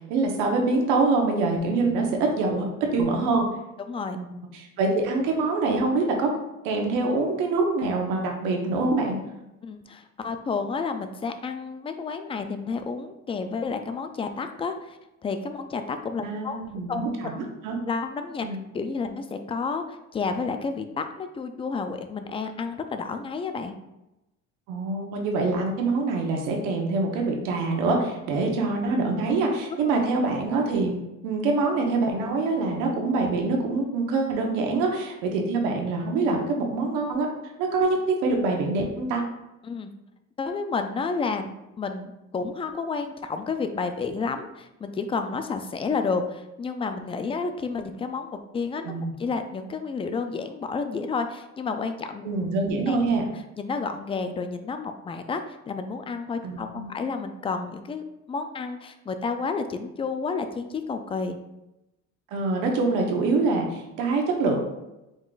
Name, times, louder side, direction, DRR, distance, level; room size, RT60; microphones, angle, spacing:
voice 1, 0.1-2.1 2.4-3.4 4.2-6.3 6.6-9.2 16.2-17.8 18.4-18.6 24.7-30.9 31.2-37.3 37.6-39.2 48.8-49.1 52.2-53.3 56.4-56.9 62.3-64.6, right 3 dB, 85° right, 2 dB, 1.1 m, -25 dB
voice 2, 3.9-4.2 9.6-16.6 16.9-17.3 17.9-18.5 18.7-23.8 39.6-39.9 40.4-41.5 41.8-48.9 49.2-52.3 52.9-53.0 53.6-61.4, left 4 dB, 20° left, 8 dB, 0.3 m, -31 dB
5.1 x 3.8 x 2.4 m, 0.94 s
cardioid pair, 120°, 31 cm